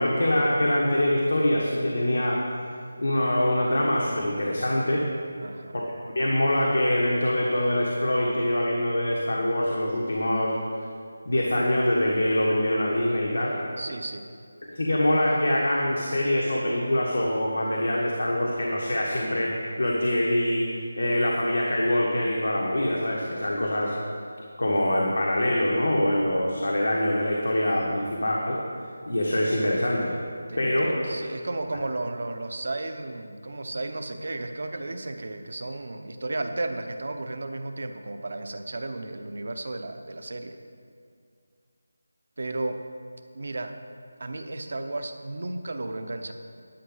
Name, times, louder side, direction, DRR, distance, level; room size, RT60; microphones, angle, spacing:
voice 1, 0.0-2.4 3.0-5.0 5.7-10.5 11.2-13.6 14.7-19.5 19.8-20.6 21.0-23.9 24.6-28.6 29.1-30.1 30.6-31.1 31.7-31.8, left 1 dB, 85° left, -3 dB, 1.5 m, -24 dB
voice 2, 5.4-5.8 13.8-14.2 30.5-40.6 42.4-42.8 43.3-43.7 44.2-46.3, right 2 dB, 50° right, 7 dB, 0.7 m, -33 dB
11.5 x 6.3 x 5.7 m, 2.3 s
figure-of-eight pair, 175°, 0 cm